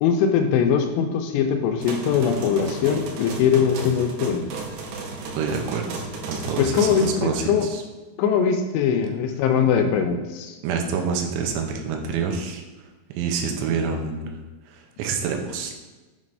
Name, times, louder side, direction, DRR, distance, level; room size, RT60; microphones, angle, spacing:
voice 1, 0.0-4.5 6.6-7.7 8.2-10.6, left 7 dB, 85° left, 6 dB, 2.7 m, -21 dB
sound 1, 1.8-7.2, right 3 dB, 70° right, 2.5 m, -34 dB
voice 2, 5.4-5.9 6.3-7.8 10.6-12.6 13.1-14.4 14.7-15.8, right 5 dB, 90° right, 3 dB, 3.0 m, -27 dB
7.5 x 3.2 x 5.3 m, 1.2 s
omnidirectional pair, 5.2 m